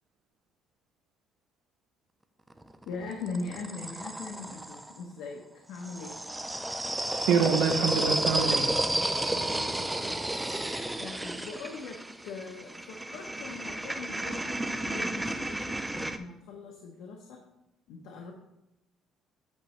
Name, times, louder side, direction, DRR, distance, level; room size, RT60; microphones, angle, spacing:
sound 1, 2.5-4.9 5.8-16.2, right 1 dB, 5° right, 0.4 m, -32 dB
voice 1, 2.9-5.4 5.7-6.1 9.3-10.4 11.0-12.0 12.2-17.4 17.9-18.3, left 4 dB, 85° left, 1 dB, 0.9 m, -41 dB
voice 2, 7.3-8.8, right 6 dB, 85° right, 7 dB, 0.8 m, -26 dB
8.5 x 3.2 x 6.3 m, 0.88 s
cardioid pair, 170°, 0 cm